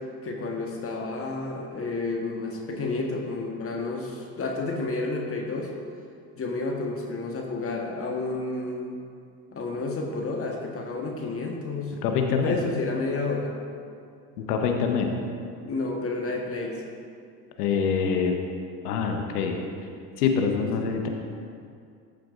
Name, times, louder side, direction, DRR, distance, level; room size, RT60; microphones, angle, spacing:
voice 1, 0.2-5.7 6.4-9.0 9.5-11.9 12.4-13.5 15.6-16.8, left 3 dB, 30° left, 0 dB, 1.4 m, -30 dB
voice 2, 12.0-12.6 14.4-15.1 17.6-18.4 18.8-19.6 20.2-21.1, left 6 dB, 70° left, 3 dB, 1.1 m, -25 dB
14.0 x 8.3 x 2.6 m, 2.3 s
hypercardioid pair, 75°, 49 cm